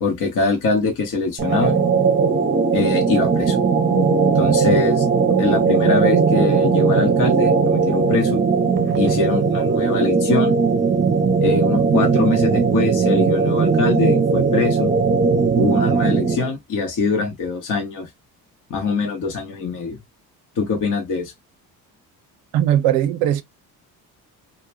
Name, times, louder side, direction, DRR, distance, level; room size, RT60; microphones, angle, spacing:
voice 1, 0.0-1.8 2.7-3.6 4.3-5.1 5.4-8.4 9.0-10.6 11.4-14.9 15.5-18.1 18.7-20.0 20.6-21.3, left 4 dB, 45° left, 0.8 m, -23 dB
sound 1, 1.4-16.5, right 5 dB, 25° right, 0.7 m, -18 dB
voice 2, 22.5-23.4, right 11 dB, 85° right, 0.6 m, -18 dB
2.2 x 2.2 x 3.1 m
supercardioid pair, 65°, 43 cm